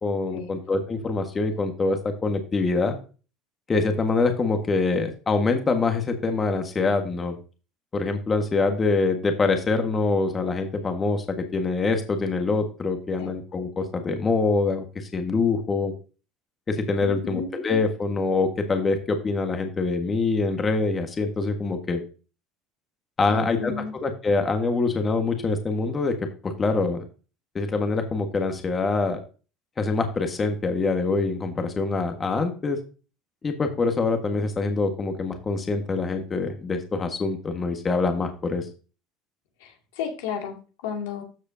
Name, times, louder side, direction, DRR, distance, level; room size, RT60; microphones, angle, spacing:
voice 1, 0.0-3.0 3.7-7.3 7.9-15.9 16.7-22.0 23.2-26.1 26.4-27.0 27.5-29.2 29.8-32.8 33.4-38.7, left 3 dB, 25° left, 5 dB, 1.5 m, -25 dB
voice 2, 17.0-17.5 23.3-23.9 39.6-40.6 40.8-41.2, left 6 dB, 85° left, 2 dB, 2.3 m, -33 dB
14.0 x 5.0 x 2.7 m, 0.34 s
supercardioid pair, 100°, 0 cm